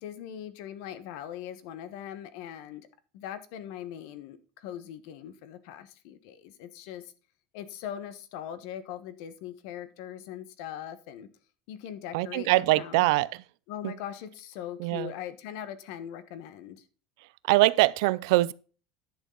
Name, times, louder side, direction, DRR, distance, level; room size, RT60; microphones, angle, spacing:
voice 1, 0.0-2.9 3.1-7.1 7.5-11.3 11.7-13.0 13.7-16.8, left 10 dB, 60° left, 1.2 m, -40 dB
voice 2, 12.1-13.4 13.8-13.9 14.8-15.1 17.5-18.5, right 20 dB, 70° right, 0.5 m, -23 dB
10.5 x 6.5 x 3.9 m
cardioid pair, 175°, 2 cm